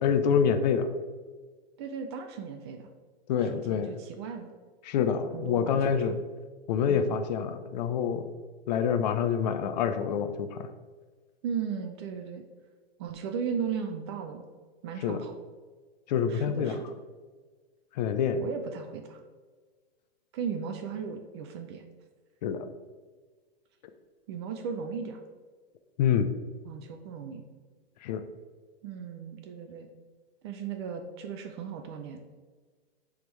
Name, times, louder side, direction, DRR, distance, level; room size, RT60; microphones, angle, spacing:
voice 1, 0.0-0.9 3.3-3.9 4.9-6.1 6.7-8.3 8.7-10.7 15.0-15.2 16.1-16.7 18.0-18.5 22.4-22.7 26.0-26.3 28.0-28.2, left 7 dB, 45° left, 9 dB, 0.5 m, -26 dB
voice 2, 1.8-2.9 3.4-4.5 5.3-6.3 6.9-7.1 11.4-12.4 13.0-14.4 14.8-15.3 16.3-16.9 18.3-19.2 20.3-21.8 24.3-25.2 26.6-27.4 28.8-29.9 30.4-32.4, right 6 dB, 25° right, 5 dB, 0.4 m, -36 dB
9.3 x 3.6 x 3.2 m, 1.4 s
hypercardioid pair, 140°, 32 cm